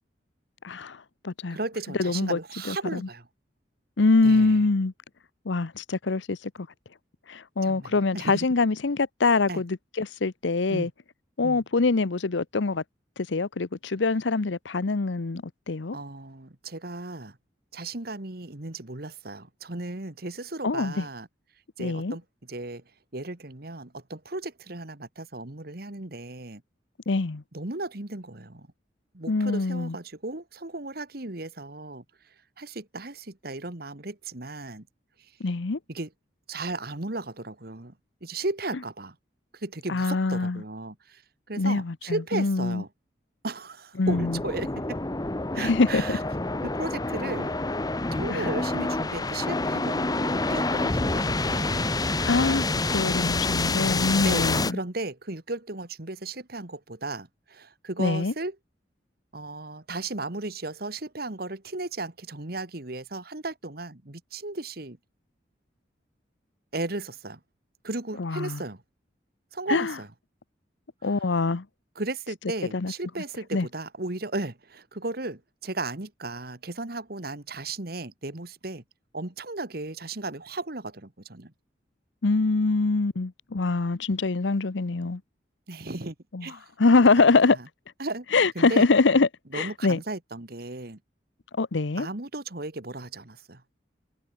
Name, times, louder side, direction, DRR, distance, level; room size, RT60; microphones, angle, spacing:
voice 1, 0.6-1.0 1.2-1.6 2.0-2.4 2.7-3.0 4.0-4.9 5.5-6.7 7.3-10.9 11.4-12.8 13.2-16.0 20.6-21.0 21.8-22.2 27.1-27.4 29.3-29.9 35.4-35.8 39.9-40.6 41.6-42.8 44.0-44.4 45.6-46.2 48.3-48.5 52.2-52.6 52.9-54.8 58.0-58.3 68.2-68.6 69.7-69.9 71.0-71.6 72.7-72.9 73.5-73.7 82.2-85.2 86.3-86.4 86.8-87.6 88.3-90.0 91.6-92.1, left 3 dB, 80° left, 0.8 m, -24 dB
voice 2, 1.5-3.3 4.2-4.6 7.6-8.5 9.5-9.6 10.7-10.9 11.4-11.6 15.9-17.4 17.7-21.3 21.8-22.2 22.5-22.8 23.1-26.6 27.5-28.7 29.1-32.0 32.6-34.9 35.2-35.3 35.9-36.1 36.5-38.0 38.2-39.2 39.5-41.2 41.5-42.9 43.4-45.0 45.5-46.2 46.6-47.5 48.1-51.9 54.2-58.6 59.3-65.0 66.7-67.4 67.8-68.8 69.5-70.1 71.0-71.3 72.0-78.8 79.1-81.5 85.7-86.2 86.4-86.7 87.2-87.7 88.0-88.3 88.6-88.9 89.5-91.0 92.0-93.6, right 2 dB, 55° right, 1.9 m, -35 dB
sound 1, 44.1-54.7, left 2 dB, 20° left, 1.0 m, -27 dB
head